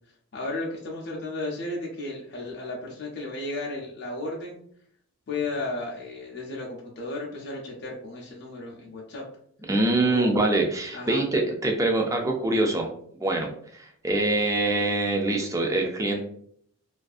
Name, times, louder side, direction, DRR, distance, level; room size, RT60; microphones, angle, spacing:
voice 1, 0.3-4.6 5.3-9.2 10.0-10.4 10.9-11.3, left 2 dB, 50° left, -2 dB, 0.4 m, -34 dB
voice 2, 9.7-12.9 13.2-16.2, right 2 dB, 15° right, 2 dB, 0.3 m, -24 dB
2.5 x 2.4 x 2.3 m, 0.64 s
head